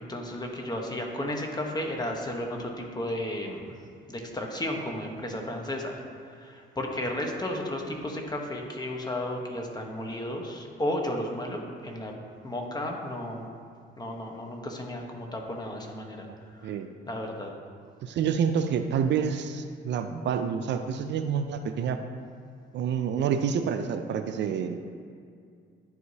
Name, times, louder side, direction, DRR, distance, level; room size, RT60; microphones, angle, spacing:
voice 1, 0.0-3.7 4.1-12.1 12.4-13.5 14.0-16.3 16.6-16.7 17.1-17.5, left 1 dB, 20° left, 1 dB, 1.0 m, -33 dB
voice 2, 18.0-22.0 22.7-24.8, right 7 dB, 65° right, 8 dB, 0.4 m, -28 dB
10.5 x 4.8 x 2.7 m, 2.3 s
cardioid pair, 90°, 20 cm